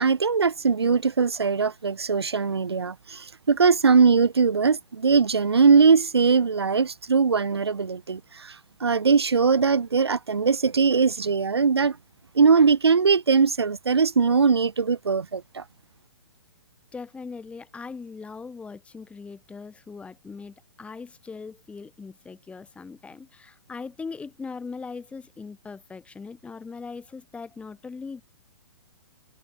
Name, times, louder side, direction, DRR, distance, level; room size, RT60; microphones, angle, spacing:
voice 1, 0.0-8.6 8.8-12.0 12.3-15.6, right 5 dB, 75° right, 4.2 m, -21 dB
voice 2, 16.9-28.2, left 4 dB, 10° left, 5.9 m, -40 dB
figure-of-eight pair, 125°, 14 cm